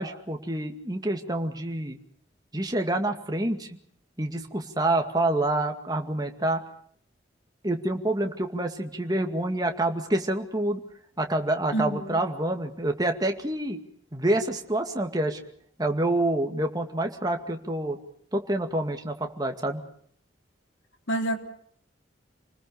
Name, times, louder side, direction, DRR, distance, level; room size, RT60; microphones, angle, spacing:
voice 1, 0.0-2.0 2.5-3.8 4.2-6.6 7.6-10.8 11.2-13.8 14.1-15.4 15.8-18.0 18.3-19.8, right 1 dB, 20° right, 2.2 m, -27 dB
voice 2, 11.7-12.2 21.1-21.4, right 1 dB, 80° left, 3.5 m, -27 dB
29.0 x 20.0 x 6.8 m
head